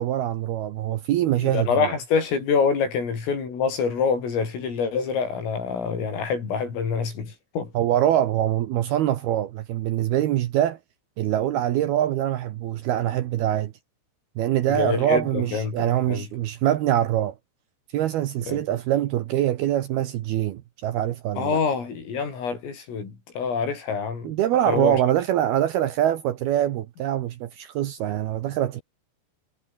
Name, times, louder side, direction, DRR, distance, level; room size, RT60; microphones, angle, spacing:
voice 1, 0.0-2.0 7.7-10.8 11.2-13.7 14.4-17.3 17.9-21.6 24.2-28.8, right 12 dB, 70° right, 2.5 m, -24 dB
voice 2, 1.4-7.7 14.7-16.3 18.5-18.6 21.4-24.3 24.7-25.0, left 5 dB, 85° left, 9.6 m, -26 dB
omnidirectional pair, 5.7 m